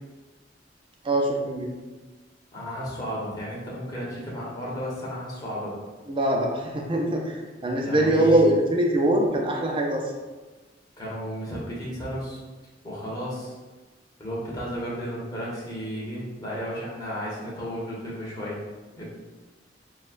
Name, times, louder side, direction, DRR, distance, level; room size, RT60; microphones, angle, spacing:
voice 1, 1.0-1.8 6.1-10.0, right 1 dB, 30° right, 0 dB, 0.5 m, -23 dB
voice 2, 2.5-5.7 7.8-8.5 11.0-12.4 12.8-13.5 14.2-18.6 19.0-19.1, equal, 20° left, -6 dB, 1.2 m, -33 dB
6.2 x 2.3 x 2.5 m, 1.2 s
head